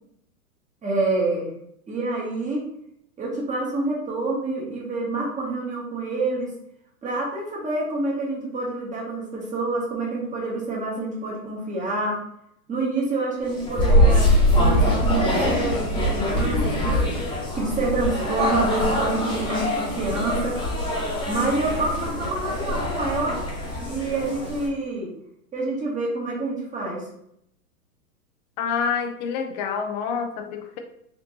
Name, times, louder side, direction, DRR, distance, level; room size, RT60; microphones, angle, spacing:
voice 1, 0.8-1.5 1.9-2.6 3.2-6.5 7.0-12.2 12.7-20.6 21.3-23.4 23.8-25.1 25.5-27.1, right 2 dB, 15° right, -2 dB, 1.1 m, -27 dB
sound 1, 13.5-24.7, equal, 10° left, 1.0 m, -23 dB
voice 2, 28.6-30.8, left 6 dB, 30° left, 5 dB, 0.4 m, -27 dB
4.4 x 2.6 x 2.8 m, 0.73 s
hypercardioid pair, 115°, 46 cm